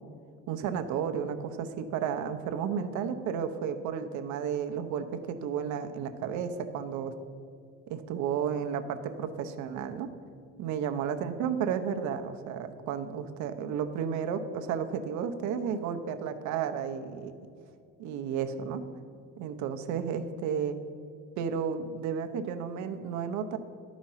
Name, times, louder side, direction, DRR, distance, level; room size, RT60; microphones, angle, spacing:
voice 1, 0.5-7.1 7.9-10.1 10.6-17.3 18.0-18.9 19.4-20.8 21.4-23.6, right 7 dB, 65° right, 8 dB, 0.7 m, -32 dB
11.5 x 5.1 x 5.6 m, 2.4 s
cardioid pair, 125°, 31 cm